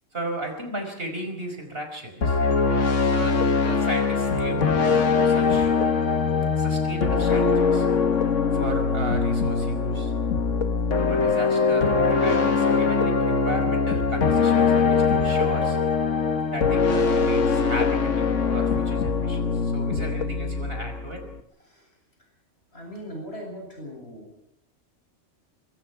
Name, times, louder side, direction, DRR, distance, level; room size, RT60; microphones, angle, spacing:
voice 1, 0.1-2.4 3.1-5.7 6.6-7.9 8.5-10.1 11.1-15.8 16.5-21.2, right 1 dB, 50° right, 5 dB, 5.4 m, -35 dB
sound 1, 2.2-21.4, left 5 dB, 75° left, 1.8 m, -22 dB
voice 2, 22.7-24.3, equal, 55° left, 0 dB, 8.4 m, -39 dB
26.0 x 23.0 x 4.8 m, 0.74 s
omnidirectional pair, 1.3 m